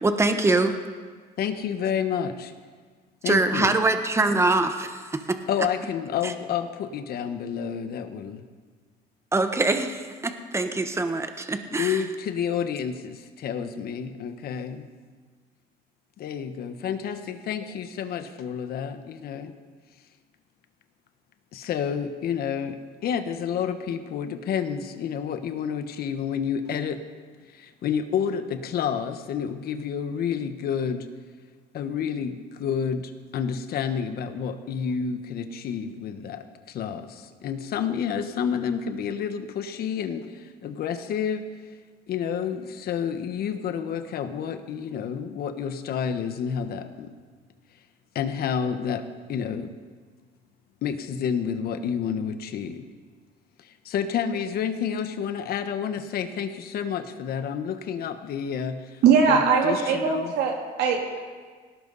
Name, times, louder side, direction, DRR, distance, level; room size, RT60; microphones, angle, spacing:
voice 1, 0.0-0.7 3.2-5.4 6.2-6.3 9.3-12.0, right 2 dB, 15° right, 7 dB, 1.2 m, -24 dB
voice 2, 1.4-2.5 3.2-3.7 5.5-8.4 11.7-14.9 16.2-19.5 21.5-22.8 23.0-27.0 27.5-31.1 31.7-41.4 42.1-47.1 48.1-49.0 49.3-49.7 50.8-52.8 53.6-59.0 59.3-60.3, left 7 dB, 65° left, 8 dB, 1.3 m, -29 dB
voice 3, 59.0-61.2, right 6 dB, 80° right, 0 dB, 3.1 m, -21 dB
18.5 x 17.5 x 4.1 m, 1.5 s
cardioid pair, 110°, 17 cm